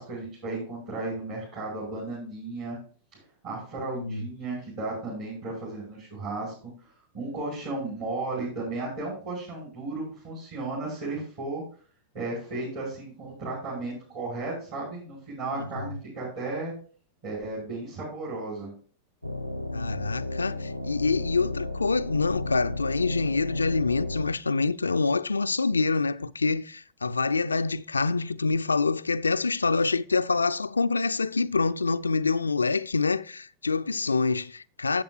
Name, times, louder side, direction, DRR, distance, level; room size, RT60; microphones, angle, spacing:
voice 1, 0.0-2.8 3.1-6.5 7.1-11.6 12.1-16.7 17.2-18.7, right 2 dB, 45° right, 5.5 m, -34 dB
voice 2, 3.9-4.3 15.5-16.0 19.7-35.0, left 4 dB, 75° left, 0.4 m, -26 dB
sound 1, 19.2-24.4, left 2 dB, 90° right, 0.7 m, -33 dB
13.5 x 8.1 x 2.4 m
figure-of-eight pair, 90°, 0 cm